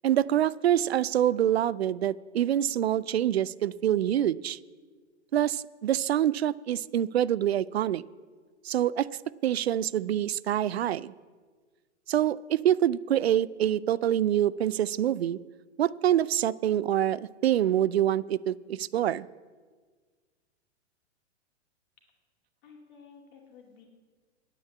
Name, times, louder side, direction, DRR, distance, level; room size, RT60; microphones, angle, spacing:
voice 1, 0.0-4.6 5.3-8.0 8.6-9.1 9.4-11.1 12.1-15.4 15.8-19.3, right 11 dB, 60° right, 19 dB, 0.4 m, -26 dB
voice 2, 22.6-23.9, left 5 dB, 40° left, 1 dB, 2.3 m, -53 dB
9.8 x 8.9 x 8.3 m, 1.5 s
figure-of-eight pair, 105°, 35 cm